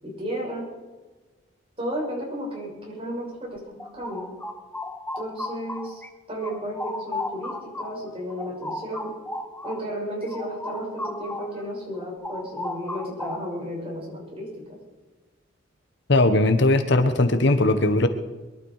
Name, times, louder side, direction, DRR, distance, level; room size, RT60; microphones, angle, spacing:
voice 1, 0.0-0.7 1.8-4.3 5.1-6.0 6.3-9.1 9.6-14.8, equal, 30° right, -2 dB, 6.8 m, -33 dB
sound 1, 3.6-6.1 6.4-11.6 11.9-13.7, left 2 dB, 10° left, 1.0 m, -35 dB
voice 2, 16.1-18.1, left 2 dB, 65° left, 9 dB, 1.3 m, -19 dB
22.5 x 12.0 x 5.0 m, 1.2 s
head